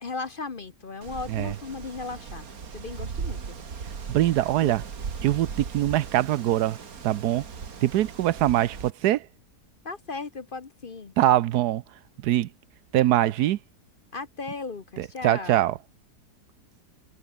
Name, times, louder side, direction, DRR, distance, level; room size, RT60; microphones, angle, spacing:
voice 1, 0.0-2.5 2.7-3.5 4.6-4.7 9.8-11.1 14.1-15.7, left 4 dB, 35° left, 1.1 m, -36 dB
Wind, 1.0-8.9, right 6 dB, 60° right, 2.3 m, -38 dB
voice 2, 4.1-4.8 5.2-6.8 7.0-7.4 7.8-9.3 11.2-11.8 12.2-12.5 12.9-13.6 15.0-15.8, right 13 dB, 80° right, 1.2 m, -23 dB
omnidirectional pair, 1.7 m